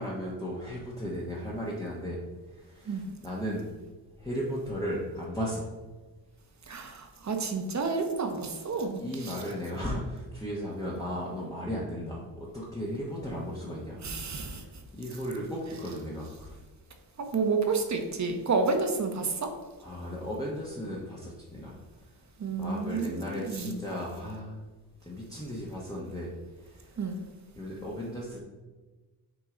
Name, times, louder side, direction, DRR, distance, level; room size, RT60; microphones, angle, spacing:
voice 1, 0.0-2.2 2.6-3.7 4.2-5.7 9.0-14.0 14.3-14.7 14.9-16.6 19.8-21.8 22.6-24.6 25.0-26.3 26.6-27.0 27.6-28.4, equal, 10° left, -6 dB, 1.1 m, -35 dB
voice 2, 6.7-9.4 14.0-14.6 17.2-19.5 22.4-23.8 27.0-27.2, right 4 dB, 40° right, 5 dB, 1.0 m, -30 dB
7.9 x 4.7 x 3.8 m, 1.2 s
wide cardioid pair, 140°, 42 cm